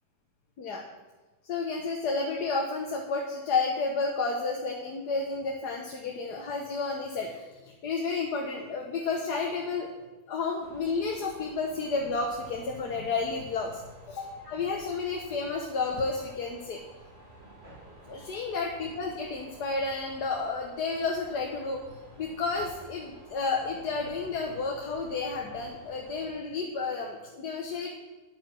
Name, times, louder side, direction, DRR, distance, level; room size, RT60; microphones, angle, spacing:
voice 1, 1.5-9.9 10.3-13.8 14.2-16.8 18.1-21.8 22.2-27.9, left 4 dB, 85° left, 0 dB, 1.7 m, -31 dB
sound 1, 10.6-26.3, right 1 dB, 40° right, 3.1 m, -52 dB
9.8 x 8.7 x 6.3 m, 1.2 s
omnidirectional pair, 1.7 m